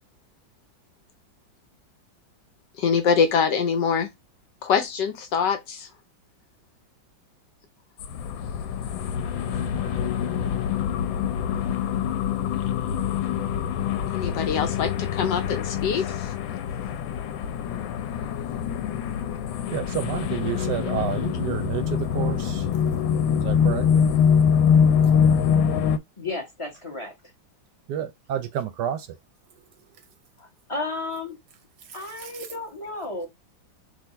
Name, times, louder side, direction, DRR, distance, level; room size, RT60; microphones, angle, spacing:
voice 1, 2.8-4.1 4.6-5.9 14.1-16.3, left 6 dB, 70° left, 1.4 m, -24 dB
sound 1, 8.0-26.0, left 7 dB, 85° left, 1.4 m, -24 dB
voice 2, 19.7-22.7 23.4-23.9 27.9-29.2 31.9-32.5, right 10 dB, 75° right, 1.1 m, -30 dB
voice 3, 26.2-27.1 30.4-31.4 31.9-33.3, left 2 dB, 20° left, 0.9 m, -33 dB
3.8 x 2.6 x 4.3 m
omnidirectional pair, 2.1 m